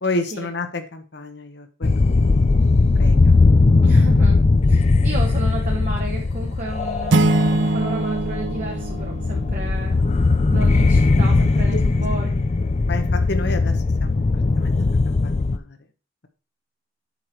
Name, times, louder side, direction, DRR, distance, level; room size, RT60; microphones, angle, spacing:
voice 1, 0.0-3.3 11.7-11.8 12.9-14.7 15.1-15.8, left 2 dB, 60° left, 8 dB, 1.0 m, -31 dB
sound 1, 1.8-15.6, left 3 dB, 35° left, 0.4 m, -19 dB
voice 2, 3.8-4.4 4.7-12.5, right 2 dB, 40° right, -1 dB, 1.2 m, -33 dB
sound 2, 7.1-9.9, right 2 dB, 70° right, 0.6 m, -22 dB
8.2 x 4.9 x 4.5 m, 0.35 s
head